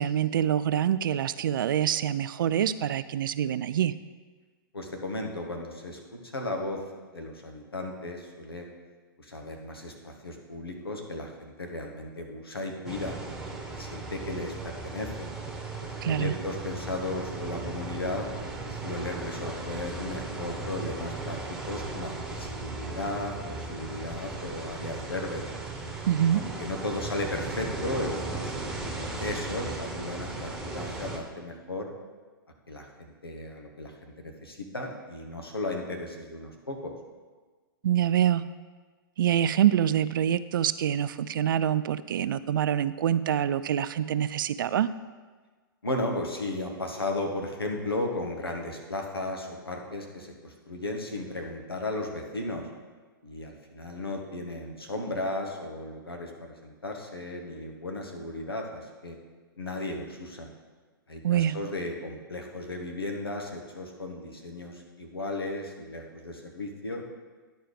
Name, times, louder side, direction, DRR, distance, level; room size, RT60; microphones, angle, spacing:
voice 1, 0.0-3.9 16.0-16.3 26.1-26.4 37.8-38.4 39.2-44.9 61.2-61.6, right 10 dB, 65° right, 15 dB, 0.4 m, -25 dB
voice 2, 4.7-6.8 7.1-8.7 9.2-13.2 13.7-15.3 15.8-18.3 18.7-21.4 21.7-25.4 26.3-28.5 28.9-31.9 32.7-36.9 45.8-52.7 53.2-59.2 59.6-60.5 61.1-67.0, left 2 dB, 90° left, 2 dB, 1.4 m, -35 dB
sound 1, 12.9-31.2, right 3 dB, 5° right, 1.1 m, -37 dB
10.5 x 4.5 x 5.1 m, 1.4 s
figure-of-eight pair, 115°, 12 cm